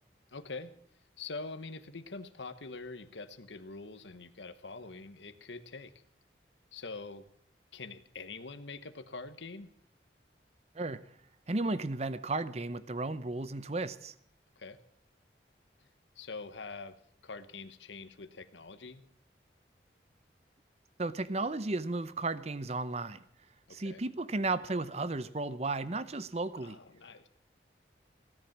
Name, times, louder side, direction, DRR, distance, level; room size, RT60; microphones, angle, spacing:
voice 1, 0.3-0.7 1.2-5.9 6.7-7.3 7.7-9.7 14.6-14.8 15.8-15.9 16.2-17.0 17.2-19.0 23.7-24.0 26.6-27.3, left 3 dB, 90° left, 1.2 m, -44 dB
voice 2, 11.5-14.1 21.0-23.2 23.7-26.8, right 2 dB, 35° right, 0.7 m, -34 dB
17.0 x 10.5 x 7.3 m
head